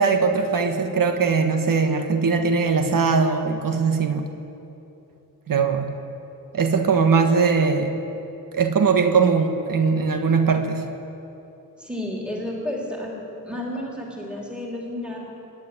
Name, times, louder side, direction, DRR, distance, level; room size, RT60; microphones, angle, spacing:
voice 1, 0.0-4.3 5.5-5.9 6.5-8.0 8.5-10.8, right 5 dB, 65° right, 5 dB, 1.5 m, -20 dB
voice 2, 11.8-15.3, left 1 dB, 5° right, -3 dB, 3.2 m, -31 dB
26.5 x 11.5 x 9.8 m, 2.9 s
wide cardioid pair, 170°, 35 cm